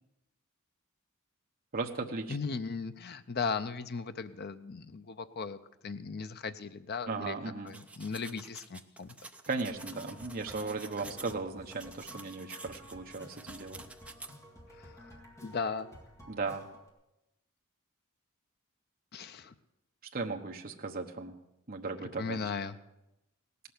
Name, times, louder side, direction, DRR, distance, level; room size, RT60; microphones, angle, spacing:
voice 1, 1.7-2.4 7.1-7.8 9.5-13.8 16.3-16.6 20.1-21.4 21.7-22.4, right 3 dB, 45° right, 2 dB, 1.1 m, -36 dB
voice 2, 2.3-5.6 5.8-7.4 7.6-9.1 14.7-15.2 15.4-15.9 19.1-19.5 22.2-22.8, left 5 dB, 50° left, 10 dB, 0.6 m, -37 dB
sound 1, 7.7-11.3 11.7-14.3, right 2 dB, 5° right, 0.6 m, -49 dB
sound 2, 9.7-16.9, equal, 15° left, 2.1 m, -53 dB
17.5 x 6.8 x 9.5 m, 0.91 s
head